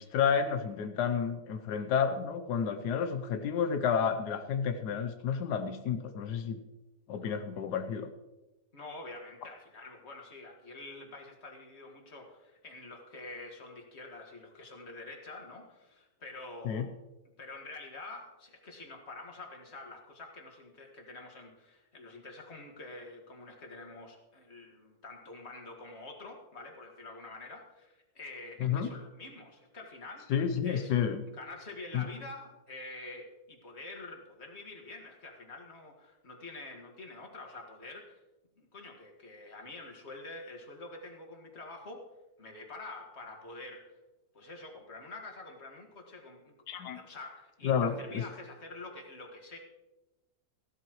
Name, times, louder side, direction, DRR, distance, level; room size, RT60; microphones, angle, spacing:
voice 1, 0.0-6.6 7.1-8.1 16.6-16.9 28.6-28.9 30.3-31.2 31.9-32.0 46.7-47.0 47.6-48.2, left 7 dB, 85° left, 7 dB, 1.3 m, -30 dB
voice 2, 8.7-16.9 17.4-30.3 30.6-30.9 31.3-38.2 38.6-42.1 42.4-43.9 44.3-46.6 46.9-49.6, left 2 dB, 40° left, 2 dB, 2.1 m, -47 dB
15.5 x 12.5 x 3.1 m, 1.1 s
omnidirectional pair, 1.7 m